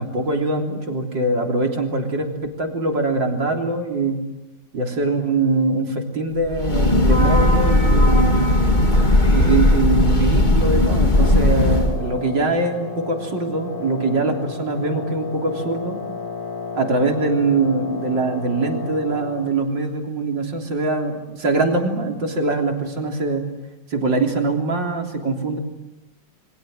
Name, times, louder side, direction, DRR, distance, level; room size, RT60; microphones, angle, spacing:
voice 1, 0.0-4.2 4.7-8.4 9.3-16.0 16.7-23.4 23.9-25.6, right 3 dB, 85° right, 2 dB, 4.2 m, -23 dB
Breathing / Train, 6.5-12.0, left 1 dB, 25° left, 2.6 m, -16 dB
Wind instrument woodwind instrument, 11.1-19.7, left 4 dB, 80° left, 2.7 m, -33 dB
29.0 x 24.5 x 7.8 m, 0.99 s
omnidirectional pair, 1.9 m